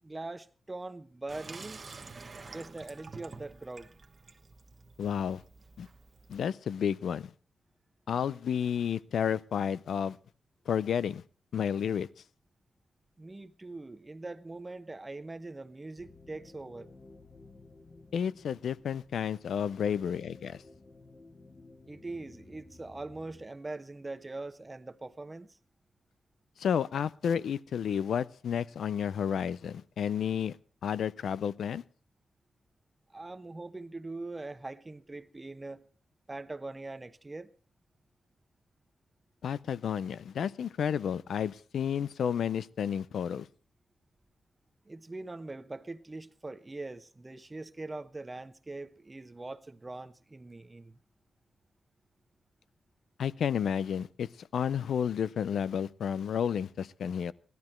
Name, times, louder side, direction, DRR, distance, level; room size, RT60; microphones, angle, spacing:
voice 1, 0.0-1.8 2.4-3.9 13.2-16.9 21.9-25.6 33.1-35.8 36.3-37.5 44.9-51.0, right 2 dB, 20° right, 0.9 m, -42 dB
Water tap faucet / Sink (filling or washing), 1.3-6.5, right 4 dB, 40° right, 1.2 m, -49 dB
voice 2, 5.0-5.4 5.8-5.9 6.3-7.3 8.1-10.2 10.7-11.2 11.5-12.1 18.1-20.6 26.6-30.6 30.8-31.8 39.4-43.5 53.2-57.3, left 8 dB, 80° left, 0.6 m, -31 dB
sound 1, 16.0-23.4, left 2 dB, 30° left, 1.3 m, -55 dB
17.0 x 12.0 x 4.5 m
wide cardioid pair, 115°, 0 cm